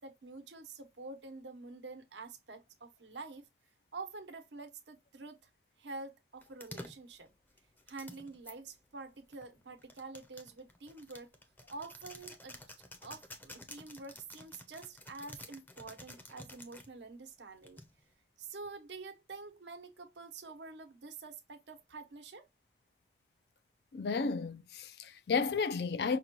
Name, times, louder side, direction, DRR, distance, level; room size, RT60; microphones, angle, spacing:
voice 1, 0.0-3.5 3.9-5.5 5.8-7.3 7.9-11.3 11.7-12.6 13.0-17.8 18.4-22.5, right 3 dB, 90° right, 0.9 m, -47 dB
sound 1, 6.4-8.5 9.3-16.9 17.6-18.1, left 1 dB, 10° left, 0.5 m, -51 dB
voice 2, 23.9-26.2, left 5 dB, 70° left, 0.4 m, -32 dB
5.3 x 2.2 x 2.9 m
head